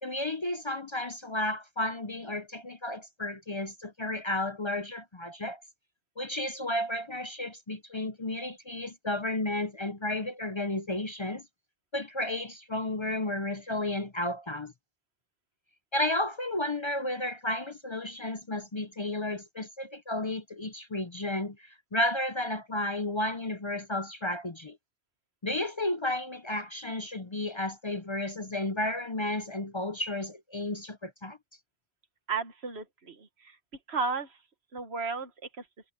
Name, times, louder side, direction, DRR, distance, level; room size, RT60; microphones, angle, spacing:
voice 1, 0.0-5.6 6.2-11.4 11.9-14.7 15.9-24.8 25.4-31.4, left 1 dB, 30° left, 0.6 m, -32 dB
voice 2, 32.3-33.6 33.9-34.4 34.7-35.7, right 4 dB, 80° right, 1.8 m, -34 dB
omnidirectional pair, 1.1 m